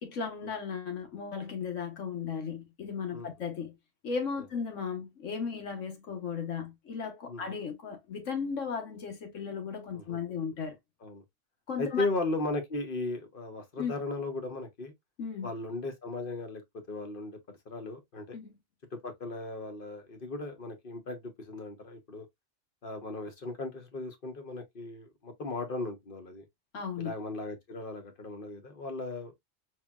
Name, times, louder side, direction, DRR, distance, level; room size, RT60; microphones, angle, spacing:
voice 1, 0.0-3.8 4.0-10.8 11.7-12.1 13.8-13.9 15.2-15.5 18.3-18.6 26.7-27.1, left 6 dB, 85° left, 1.5 m, -36 dB
voice 2, 11.8-14.9 15.4-16.6 16.9-18.4 18.9-22.2 22.8-26.4 27.0-29.3, left 2 dB, 50° left, 1.1 m, -36 dB
4.5 x 3.3 x 2.3 m
omnidirectional pair, 1.3 m